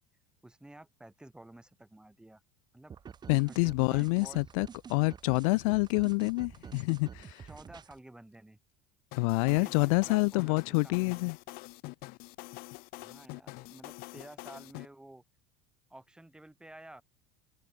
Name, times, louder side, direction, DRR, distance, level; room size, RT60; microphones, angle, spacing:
voice 1, 0.4-2.4 2.7-2.9 3.4-4.4 7.5-8.6 9.4-11.2 13.0-15.2 15.9-17.0, right 1 dB, 5° right, 4.6 m, -52 dB
sound 1, 2.9-8.0, right 7 dB, 25° right, 4.6 m, -48 dB
voice 2, 3.3-7.5 9.2-11.4, left 29 dB, 80° left, 1.0 m, -27 dB
sound 2, 9.1-14.9, left 25 dB, 60° left, 4.8 m, -45 dB
cardioid pair, 150°, 17 cm